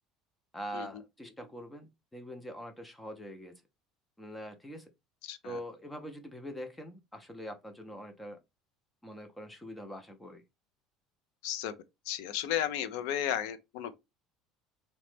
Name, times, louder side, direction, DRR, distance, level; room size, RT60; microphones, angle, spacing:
voice 1, 0.5-3.6 4.2-4.9 5.4-8.4 9.0-10.4, equal, 10° left, 0.5 m, -43 dB
voice 2, 5.2-5.6 11.4-11.7 12.1-13.9, left 10 dB, 80° left, 0.4 m, -34 dB
2.9 x 2.1 x 3.1 m
cardioid pair, 135°, 0 cm